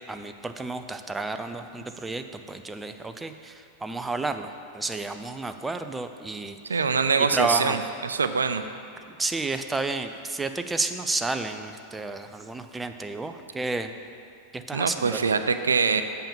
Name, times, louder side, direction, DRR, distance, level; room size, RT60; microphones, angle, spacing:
voice 1, 0.1-6.6 7.3-7.8 9.1-13.9 14.5-15.2, right 3 dB, 10° right, 8 dB, 0.5 m, -31 dB
voice 2, 6.7-8.6 14.7-16.0, right 5 dB, 80° right, 9 dB, 0.4 m, -24 dB
6.9 x 5.5 x 7.2 m, 2.5 s
figure-of-eight pair, 95°, 0 cm